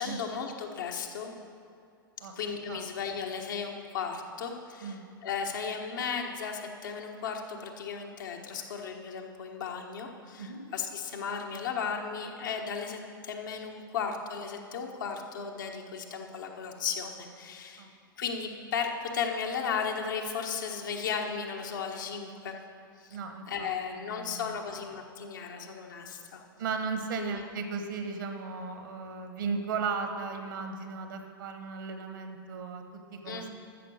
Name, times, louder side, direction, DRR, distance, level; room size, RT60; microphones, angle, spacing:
voice 1, 0.0-1.3 2.3-17.9 18.2-22.6 23.0-23.2 23.5-26.4 27.2-27.4 33.2-33.5, left 6 dB, 60° left, 2 dB, 1.3 m, -35 dB
voice 2, 2.2-2.8 3.3-3.4 4.8-5.1 10.4-10.6 17.8-17.9 23.1-23.7 23.9-24.5 26.6-33.5, right 5 dB, 60° right, 6 dB, 1.3 m, -36 dB
13.5 x 6.8 x 6.5 m, 2.5 s
figure-of-eight pair, 95°, 12 cm